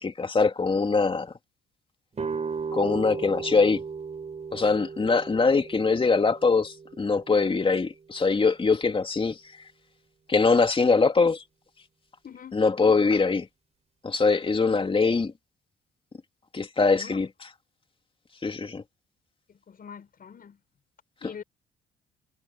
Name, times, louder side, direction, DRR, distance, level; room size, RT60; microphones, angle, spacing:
voice 1, 0.0-1.3 2.7-3.8 4.5-9.4 10.3-11.4 12.5-13.5 14.0-15.3 16.5-17.3 18.4-18.8, left 4 dB, 30° left, 2.6 m, -23 dB
sound 1, 2.1-7.9, right 5 dB, 35° right, 5.1 m, -36 dB
voice 2, 12.2-12.6 16.9-17.2 19.5-20.6 21.2-21.4, left 7 dB, 50° left, 7.1 m, -44 dB
supercardioid pair, 70°, 19 cm